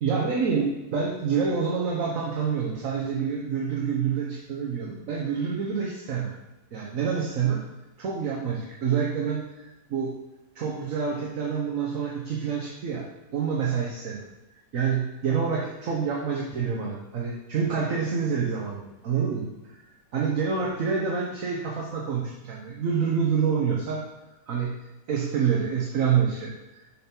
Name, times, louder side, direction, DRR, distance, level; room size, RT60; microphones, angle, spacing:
voice 1, 0.0-6.3 6.7-7.6 8.0-10.1 10.5-13.0 13.3-14.3 14.7-19.5 20.1-24.0 24.5-24.7 25.1-26.5, right 6 dB, 60° right, -2 dB, 1.4 m, -27 dB
7.1 x 5.8 x 4.5 m, 1.0 s
omnidirectional pair, 1.6 m